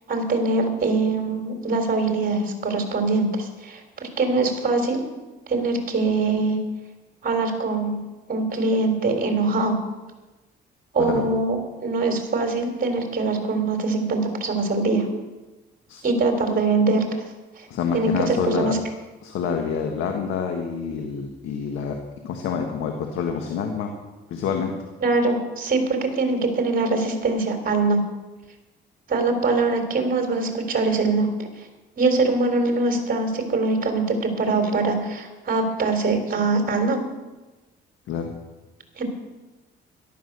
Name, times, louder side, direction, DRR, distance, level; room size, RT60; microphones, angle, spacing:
voice 1, 0.1-5.0 5.5-6.6 7.2-8.0 8.3-9.8 10.9-11.6 11.8-15.1 16.0-17.1 17.6-17.7 17.9-18.8 25.0-28.0 29.1-31.5 32.0-37.0 39.0-39.1, right 3 dB, 45° right, 4 dB, 3.8 m, -23 dB
voice 2, 17.7-18.7 19.2-22.0 22.2-23.9 24.3-24.7 38.1-38.3, left 6 dB, 90° left, 4 dB, 1.6 m, -27 dB
13.5 x 12.0 x 6.7 m, 1.1 s
cardioid pair, 90°, 20 cm